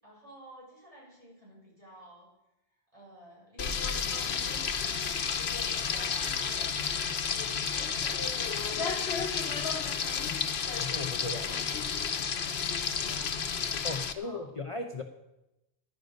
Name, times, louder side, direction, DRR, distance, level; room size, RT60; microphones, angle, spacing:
voice 1, 0.0-2.3 2.7-7.5 8.4-9.3 9.7-10.5 11.2-11.9 12.2-13.4 14.2-14.5, right 1 dB, 35° right, -5 dB, 6.8 m, -54 dB
Frying (food), 3.6-14.1, left 6 dB, 85° left, 1.1 m, -31 dB
voice 2, 10.8-11.6 13.8-15.0, left 2 dB, 35° left, 4 dB, 0.9 m, -37 dB
15.5 x 10.5 x 5.3 m, 0.92 s
omnidirectional pair, 1.0 m